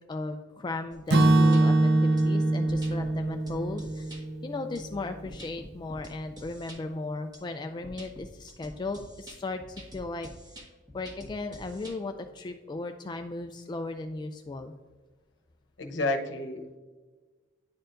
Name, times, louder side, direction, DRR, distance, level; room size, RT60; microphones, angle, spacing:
voice 1, 0.1-10.3 10.9-14.7, left 2 dB, 25° left, 6 dB, 0.3 m, -36 dB
sound 1, 0.9-1.6 2.2-2.3 2.7-3.1 3.5-4.2 4.7-6.8 7.3-7.4 7.8-11.9, equal, 20° right, 1.5 m, -47 dB
Acoustic guitar / Strum, 1.1-5.1, right 2 dB, 60° right, 0.6 m, -23 dB
voice 2, 15.8-16.8, left 2 dB, 75° left, 4 dB, 0.9 m, -30 dB
10.5 x 4.4 x 2.5 m, 1.3 s
head